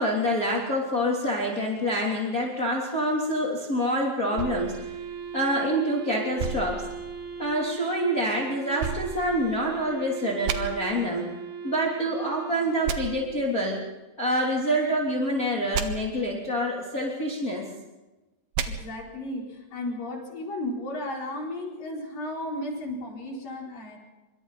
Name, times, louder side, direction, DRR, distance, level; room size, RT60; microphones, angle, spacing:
voice 1, 0.0-4.9 5.3-6.8 7.4-11.3 11.6-13.8 14.2-17.6, equal, 25° left, -3 dB, 3.5 m, -26 dB
Wind instrument woodwind instrument, 4.3-13.6, right 7 dB, 70° right, 5.7 m, -38 dB
sound 1, 4.4-5.8 6.4-7.6 8.8-10.0 10.5-10.6 12.9-13.0 15.7-15.9 18.5-18.7, right 7 dB, 90° right, 3.4 m, -33 dB
voice 2, 18.7-24.0, left 1 dB, 60° left, -1 dB, 6.1 m, -34 dB
25.5 x 24.5 x 4.2 m, 1.1 s
omnidirectional pair, 4.4 m